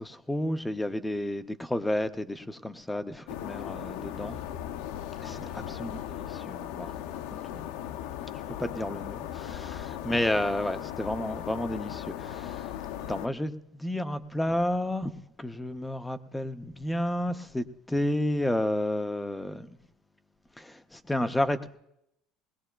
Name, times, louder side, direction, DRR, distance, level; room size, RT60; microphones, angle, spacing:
voice 1, 0.0-4.4 5.2-7.6 8.3-12.8 13.1-19.7 20.6-21.8, left 1 dB, 5° left, 0.4 m, -31 dB
sound 1, 3.3-13.3, left 11 dB, 75° left, 0.4 m, -37 dB
20.5 x 19.5 x 2.2 m
cardioid pair, 175°, 0 cm